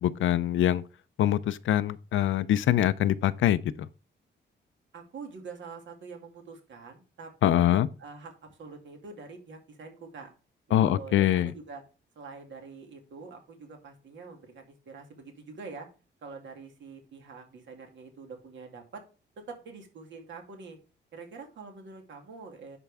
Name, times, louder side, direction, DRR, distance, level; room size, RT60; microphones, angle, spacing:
voice 1, 0.0-0.8 1.2-3.6 7.4-7.9 10.7-11.5, left 12 dB, 80° left, 0.6 m, -24 dB
voice 2, 4.9-10.3 10.7-11.8 12.2-15.9 16.2-19.0 19.4-20.8 21.1-22.8, right 4 dB, 70° right, 2.4 m, -45 dB
11.0 x 4.6 x 3.5 m
wide cardioid pair, 150°, 20 cm